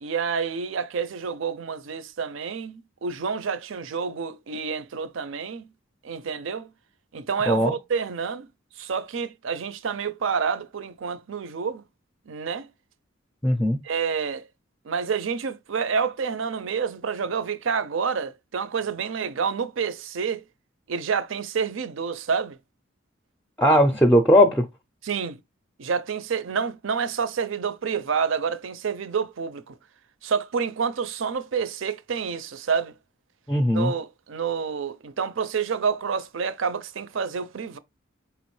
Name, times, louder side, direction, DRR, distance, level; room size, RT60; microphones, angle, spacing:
voice 1, 0.0-5.7 6.0-6.7 7.1-8.5 8.8-11.8 12.3-12.7 13.8-14.4 14.8-20.4 20.9-22.6 23.7-23.8 25.0-25.4 25.8-29.7 30.2-32.9 33.7-37.8, right 6 dB, 75° right, 0.5 m, -28 dB
voice 2, 13.4-13.8 23.6-24.7 33.5-33.9, equal, 10° left, 0.4 m, -18 dB
4.8 x 3.0 x 3.1 m
head